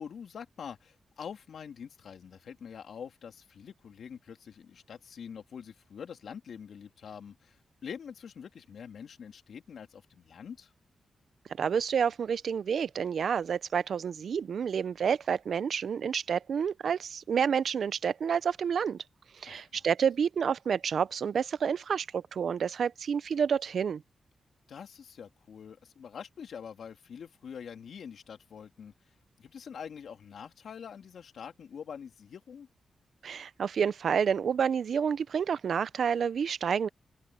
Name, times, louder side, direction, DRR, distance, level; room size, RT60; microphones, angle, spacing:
voice 1, 0.0-10.7 19.5-19.8 24.7-28.9 29.4-32.7, left 7 dB, 75° left, 3.1 m, -45 dB
voice 2, 11.6-19.0 19.4-24.0 33.2-36.9, right 7 dB, 70° right, 0.6 m, -29 dB
open air
cardioid pair, 60°, 0 cm